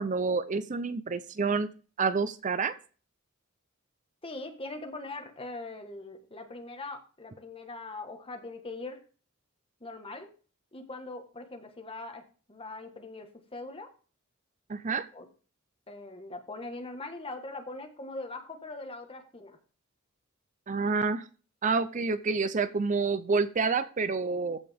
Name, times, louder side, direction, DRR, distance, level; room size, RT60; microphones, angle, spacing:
voice 1, 0.0-1.7 2.0-2.7 14.7-15.0 20.7-21.2 21.6-24.6, right 4 dB, 35° right, 12 dB, 0.5 m, -28 dB
voice 2, 4.2-9.0 9.8-10.3 10.7-12.2 12.5-13.9 15.1-15.3 15.9-19.6, left 2 dB, 25° left, 5 dB, 1.6 m, -41 dB
14.5 x 5.1 x 3.6 m, 0.37 s
head